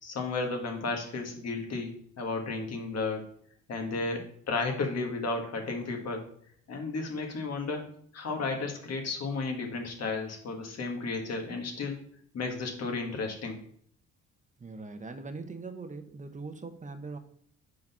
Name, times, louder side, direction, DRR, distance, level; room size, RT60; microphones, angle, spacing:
voice 1, 0.0-3.2 3.7-4.2 4.5-6.2 6.7-7.8 8.1-12.0 12.3-13.6, left 3 dB, 55° left, 3 dB, 1.5 m, -33 dB
voice 2, 14.6-17.2, right 3 dB, 25° right, 7 dB, 0.8 m, -41 dB
5.0 x 4.1 x 5.4 m, 0.62 s
cardioid pair, 90°, 30 cm